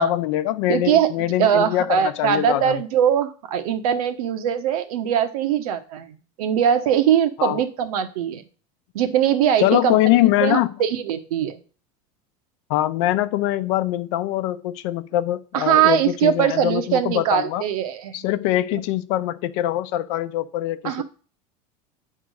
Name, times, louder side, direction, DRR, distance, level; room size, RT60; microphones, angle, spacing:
voice 1, 0.0-2.8 7.4-7.6 9.6-10.7 12.7-17.6 18.1-21.0, left 14 dB, 55° left, 0.7 m, -23 dB
voice 2, 0.7-1.1 1.4-8.4 8.9-10.0 10.4-11.6 15.5-18.1 18.7-18.8 20.8-21.0, right 9 dB, 90° right, 1.2 m, -21 dB
9.3 x 3.6 x 6.4 m
supercardioid pair, 175°, 18 cm